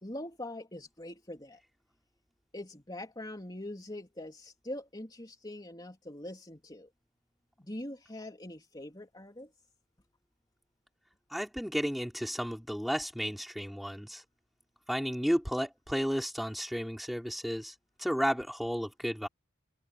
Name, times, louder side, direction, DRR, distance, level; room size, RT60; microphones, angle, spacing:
voice 1, 0.0-1.6 2.5-6.9 7.6-9.5, left 1 dB, 20° left, 3.6 m, -43 dB
voice 2, 11.3-14.2 14.9-17.7 18.0-19.3, equal, ahead, 5.6 m, -33 dB
open air
head